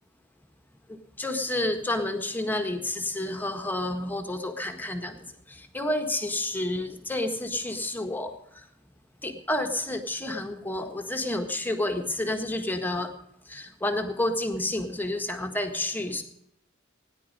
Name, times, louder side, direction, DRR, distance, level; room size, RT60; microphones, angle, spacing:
voice 1, 1.2-8.6 9.2-13.1 13.5-16.2, left 1 dB, 10° left, 5 dB, 1.5 m, -30 dB
17.5 x 10.5 x 5.3 m, 0.76 s
head